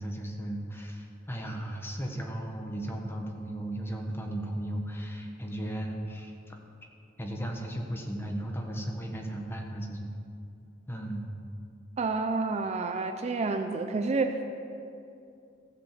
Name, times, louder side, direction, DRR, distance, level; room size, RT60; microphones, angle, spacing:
voice 1, 0.0-6.6 7.2-10.1 10.9-11.3, right 1 dB, 10° left, 2 dB, 1.2 m, -35 dB
voice 2, 12.0-14.5, right 3 dB, 35° right, 6 dB, 0.4 m, -29 dB
15.0 x 5.3 x 7.3 m, 2.6 s
head